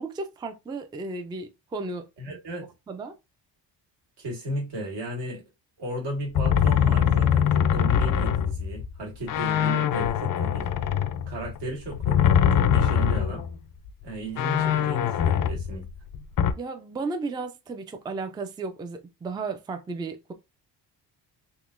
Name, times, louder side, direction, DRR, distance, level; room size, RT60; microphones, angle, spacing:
voice 1, 0.0-2.4 2.9-3.1 16.6-20.3, right 3 dB, 10° right, 0.3 m, -34 dB
voice 2, 2.2-2.7 4.2-5.4 5.8-10.7 11.3-13.5 14.0-15.8, equal, 80° right, 1.8 m, -35 dB
sound 1, 6.3-9.0 9.3-13.5 13.9-14.0 14.4-16.5, left 8 dB, 50° left, 0.5 m, -23 dB
3.7 x 2.7 x 2.5 m
cardioid pair, 125°, 42 cm